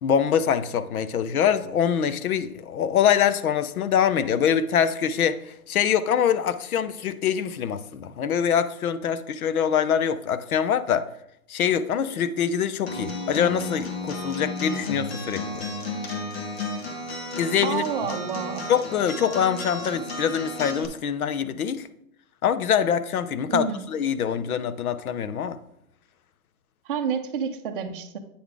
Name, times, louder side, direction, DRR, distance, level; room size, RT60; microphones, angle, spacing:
voice 1, 0.0-11.0 11.5-15.6 17.4-17.8 18.7-21.9 22.4-25.6, left 8 dB, 75° left, 13 dB, 0.7 m, -24 dB
Acoustic guitar, 12.9-20.8, left 2 dB, 45° left, 1.2 m, -33 dB
voice 2, 17.6-18.7 23.5-23.9 26.8-28.2, right 7 dB, 40° right, 3 dB, 0.6 m, -29 dB
8.6 x 3.9 x 4.8 m, 0.75 s
hypercardioid pair, 170°, 44 cm